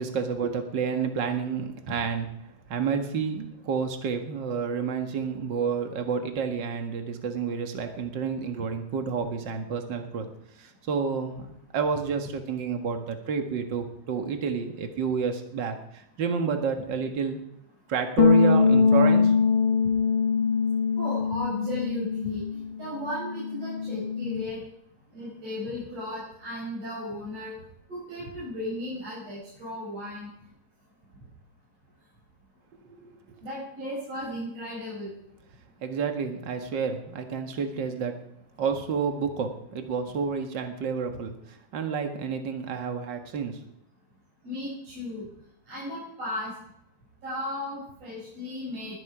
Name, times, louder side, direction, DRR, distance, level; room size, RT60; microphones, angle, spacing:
voice 1, 0.0-2.3 2.7-10.3 10.6-11.5 11.7-17.4 17.9-19.3 32.9-33.1 35.8-38.2 38.6-41.3 41.7-43.6, right 6 dB, 65° right, 6 dB, 1.1 m, -29 dB
sound 1, 18.2-22.7 23.0-24.4, left 5 dB, 65° left, 2.3 m, -23 dB
voice 2, 21.0-24.6 25.1-27.5 27.9-30.3 33.4-35.1 44.4-45.3 45.7-46.5 47.2-49.0, left 1 dB, 40° right, -7 dB, 6.5 m, -35 dB
20.5 x 12.5 x 5.0 m, 0.76 s
omnidirectional pair, 4.6 m